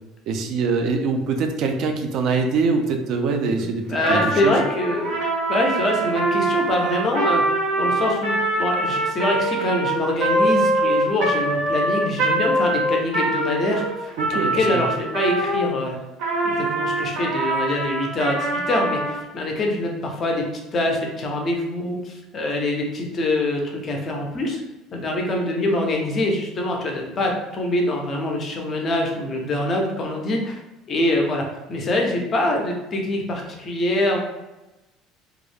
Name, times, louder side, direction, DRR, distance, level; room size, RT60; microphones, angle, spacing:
voice 1, 0.3-4.5 14.2-14.8, right 4 dB, 45° right, 4 dB, 0.3 m, -23 dB
voice 2, 3.6-5.2 5.5-16.0 16.4-20.5 20.7-24.6 24.9-30.6 30.9-34.2, left 1 dB, 25° left, 1 dB, 0.4 m, -24 dB
Trumpet, 3.9-15.7 16.2-19.2, right 1 dB, 75° right, 0.8 m, -23 dB
2.3 x 2.0 x 3.1 m, 1.0 s
cardioid pair, 175°, 0 cm